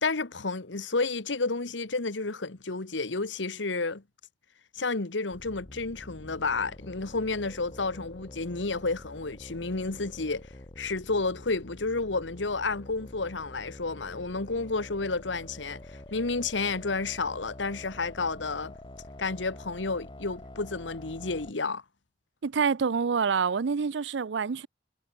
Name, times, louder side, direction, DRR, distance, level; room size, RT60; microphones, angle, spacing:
voice 1, 0.0-4.0 4.7-10.5 10.8-18.7 19.2-21.8, left 3 dB, 85° left, 1.4 m, -31 dB
sound 1, 5.3-21.5, left 1 dB, 25° left, 1.0 m, -47 dB
voice 2, 22.4-24.7, right 5 dB, 75° right, 0.5 m, -27 dB
head